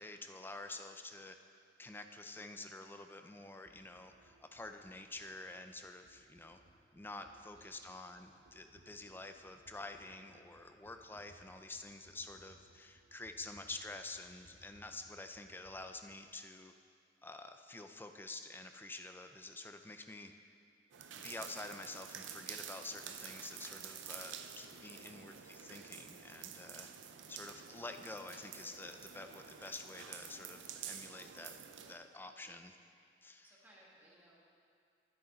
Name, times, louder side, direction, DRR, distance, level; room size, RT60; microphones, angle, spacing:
voice 1, 0.0-1.4 1.8-6.6 6.9-16.7 17.2-20.4 21.1-26.9 27.3-31.6 31.9-32.7 33.2-33.4, left 2 dB, 10° left, 6 dB, 0.4 m, -48 dB
sound 1, 3.7-16.1, right 1 dB, 70° right, 1.2 m, -66 dB
sound 2, 20.9-32.0, right 8 dB, 90° right, 0.5 m, -49 dB
voice 2, 24.9-25.2 32.3-32.6 33.4-34.4, right 1 dB, 10° right, -6 dB, 1.9 m, -64 dB
10.0 x 9.5 x 4.0 m, 2.3 s
head